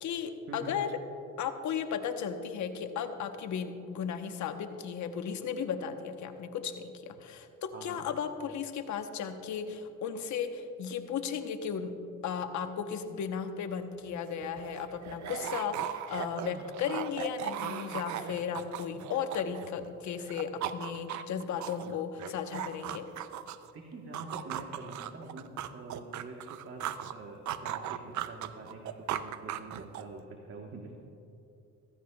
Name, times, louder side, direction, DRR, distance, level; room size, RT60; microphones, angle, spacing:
voice 1, 0.0-1.0 1.4-23.1, left 7 dB, 70° left, 7 dB, 0.9 m, -35 dB
voice 2, 7.7-8.0 23.7-30.9, right 3 dB, 45° right, 1 dB, 1.2 m, -45 dB
sound 1, 14.1-14.2 14.4-19.9 20.2-23.7 24.1-27.1 27.5-30.2, right 11 dB, 70° right, 0.5 m, -38 dB
15.0 x 15.0 x 2.3 m, 2.7 s
cardioid pair, 90°, 30 cm